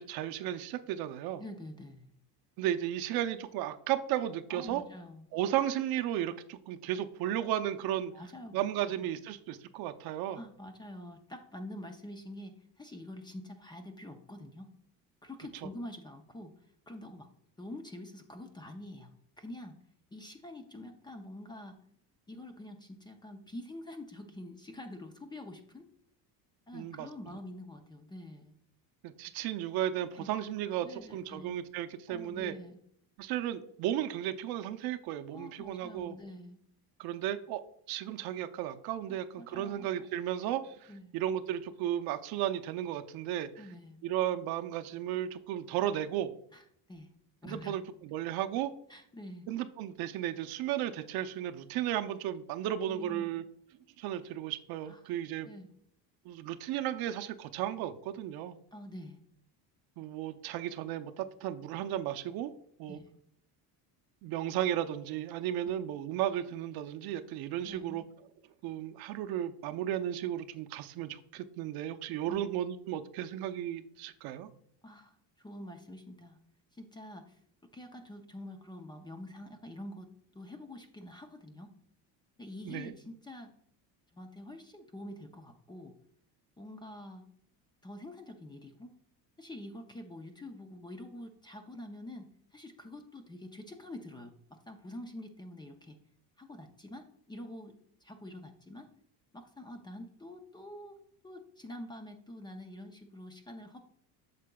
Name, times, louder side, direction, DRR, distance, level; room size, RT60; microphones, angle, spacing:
voice 1, 0.0-1.4 2.6-4.8 5.3-8.1 8.5-10.4 26.7-27.1 29.0-32.5 33.2-36.2 37.0-37.6 37.9-43.5 44.0-46.3 47.5-48.7 49.5-53.4 54.0-55.5 56.3-58.6 60.0-62.5 62.8-63.0 64.2-68.0 68.6-74.5 82.7-82.9, right 11 dB, 65° right, 9 dB, 0.6 m, -34 dB
voice 2, 1.4-2.2 4.5-5.3 8.1-8.7 10.3-14.7 15.2-16.5 16.9-17.3 17.6-19.8 20.1-21.8 22.3-25.9 26.7-28.6 30.2-30.3 30.8-31.6 32.1-32.8 35.3-36.6 39.1-40.1 40.9-41.1 43.6-44.0 46.5-46.6 46.9-47.1 47.4-47.8 48.9-49.5 52.9-53.3 54.8-55.0 55.4-55.7 58.7-59.2 62.9-63.1 67.6-68.1 72.3-72.5 74.8-76.4 76.7-77.4 77.7-81.7 82.4-83.5 84.1-85.9 86.6-87.3 87.8-88.9 89.4-96.0 96.4-97.7 98.0-98.9 99.3-101.0 101.2-103.8, left 1 dB, 10° left, 5 dB, 0.5 m, -46 dB
8.4 x 6.7 x 2.2 m, 0.67 s
cardioid pair, 140°, 40 cm